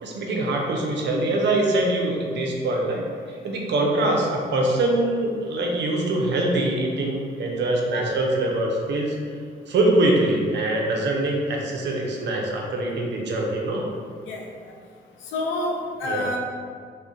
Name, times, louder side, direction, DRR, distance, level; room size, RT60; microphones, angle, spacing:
voice 1, 0.0-9.2 9.7-13.9 16.0-16.3, right 2 dB, 65° right, 0 dB, 0.6 m, -23 dB
voice 2, 15.3-16.4, left 2 dB, 90° left, 0 dB, 0.5 m, -27 dB
2.4 x 2.1 x 3.6 m, 2.1 s
cardioid pair, 65°, 20 cm